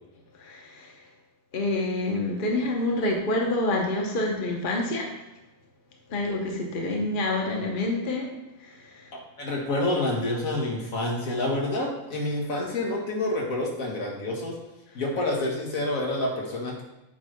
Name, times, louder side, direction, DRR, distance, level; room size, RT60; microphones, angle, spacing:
voice 1, 0.4-0.9 1.5-5.1 6.1-8.3 8.6-9.0, left 2 dB, 40° left, 1 dB, 1.1 m, -27 dB
voice 2, 9.4-14.5 15.0-16.8, left 1 dB, 80° left, -2 dB, 1.8 m, -28 dB
8.3 x 3.3 x 5.1 m, 1.0 s
omnidirectional pair, 1.4 m